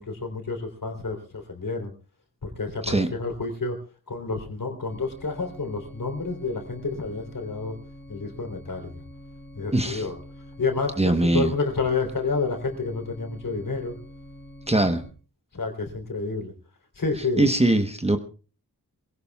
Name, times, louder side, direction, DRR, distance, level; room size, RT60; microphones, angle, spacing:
voice 1, 0.0-1.9 2.4-3.8 4.1-7.8 8.1-8.9 9.5-10.2 10.6-14.0 14.8-14.9 15.5-16.5 16.9-17.5, left 3 dB, 60° left, 3 dB, 3.4 m, -29 dB
sound 1, 4.9-15.1, equal, 5° left, 5.2 m, -45 dB
voice 2, 9.7-10.1 11.0-11.5 14.7-15.0 17.4-18.2, right 2 dB, 15° right, 7 dB, 1.0 m, -21 dB
23.5 x 17.0 x 2.3 m, 0.36 s
wide cardioid pair, 80°, 37 cm